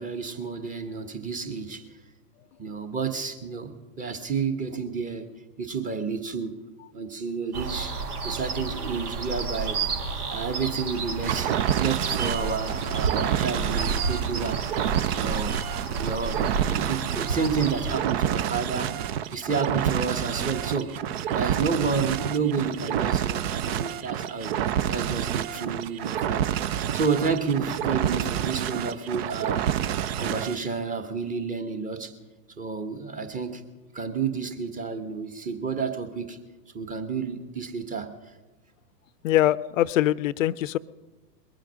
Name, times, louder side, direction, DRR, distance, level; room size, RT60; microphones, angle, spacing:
voice 1, 0.0-1.8 2.6-5.3 5.6-6.6 6.9-8.0 8.2-9.8 10.3-11.5 11.8-15.6 16.0-19.0 19.3-20.9 21.3-24.5 24.9-29.7 30.2-32.1 32.6-33.6 33.9-36.4 36.7-38.1, right 5 dB, 15° right, 8 dB, 1.3 m, -30 dB
sound 1, 7.5-17.9, right 5 dB, 65° right, 1.9 m, -31 dB
sound 2, 11.2-30.6, right 10 dB, 40° right, 0.6 m, -28 dB
voice 2, 39.2-40.8, left 13 dB, 55° left, 20 dB, 0.6 m, -23 dB
21.5 x 9.0 x 6.4 m, 1.2 s
figure-of-eight pair, 100°, 48 cm